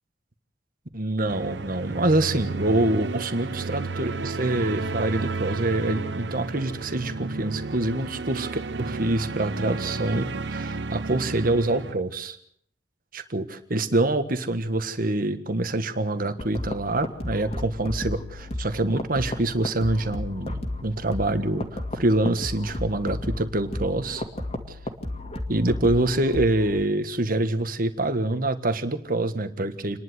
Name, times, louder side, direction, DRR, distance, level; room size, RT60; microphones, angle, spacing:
voice 1, 0.9-8.5 8.8-12.4 13.1-24.2 24.7-24.8 25.5-30.0, right 2 dB, 50° right, 9 dB, 1.6 m, -25 dB
sound 1, 1.3-11.9, right 3 dB, 65° right, 0.8 m, -32 dB
sound 2, 16.4-26.8, left 1 dB, 35° left, 2.4 m, -33 dB
28.5 x 11.0 x 8.1 m, 0.67 s
head